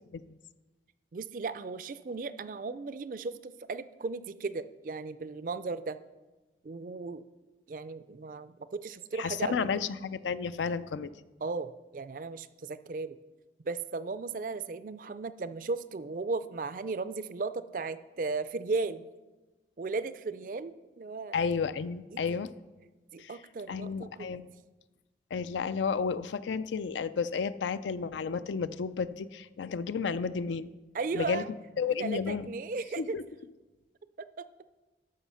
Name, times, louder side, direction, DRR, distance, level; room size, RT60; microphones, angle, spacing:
voice 1, 1.1-6.0 6.6-7.2 7.7-9.7 11.4-13.2 13.7-19.0 19.8-21.4 22.1-22.2 23.1-24.4 30.9-31.5 32.0-33.2 34.2-34.4, right 3 dB, 45° right, 14 dB, 0.4 m, -36 dB
voice 2, 9.1-11.1 21.3-22.5 23.2-23.3 23.7-24.5 25.3-30.7 31.1-31.4 31.8-32.5 33.0-33.2, left 5 dB, 90° left, 14 dB, 0.4 m, -32 dB
13.0 x 5.6 x 5.6 m, 1.2 s
head